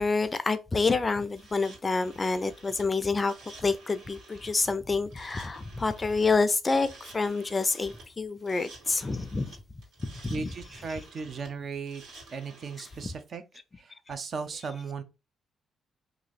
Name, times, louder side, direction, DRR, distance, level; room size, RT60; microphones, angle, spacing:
voice 1, 0.0-3.3 3.6-9.6 10.0-10.5, left 4 dB, 25° left, 0.4 m, -28 dB
sound 1, 1.3-13.2, right 2 dB, 85° right, 1.8 m, -52 dB
voice 2, 10.3-12.0 12.3-13.4 13.8-15.0, right 5 dB, 50° right, 0.6 m, -36 dB
2.9 x 2.5 x 4.0 m
cardioid pair, 90°, 0 cm